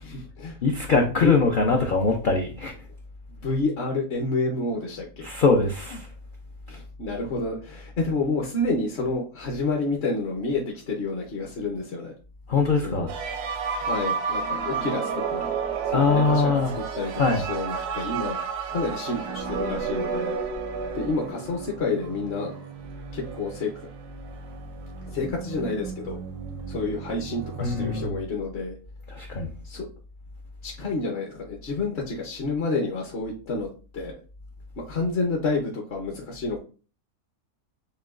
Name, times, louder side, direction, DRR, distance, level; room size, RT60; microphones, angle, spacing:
voice 1, 0.0-0.6 1.2-1.3 3.3-5.3 6.7-12.1 12.8-13.1 13.8-15.5 15.8-18.4 18.7-20.4 20.9-22.5 23.1-23.7 25.1-26.2 26.7-28.7 29.6-29.8 30.6-33.7 33.9-34.1 34.8-36.6, left 3 dB, 50° left, 0.8 m, -29 dB
voice 2, 0.6-2.7 5.2-6.1 12.5-13.1 15.9-16.8 17.2-17.5 27.6-28.2 29.1-29.5, left 4 dB, 75° left, 0.4 m, -22 dB
sound 1, 13.1-28.1, right 6 dB, 85° right, 1.2 m, -32 dB
6.6 x 2.2 x 2.4 m
omnidirectional pair, 1.6 m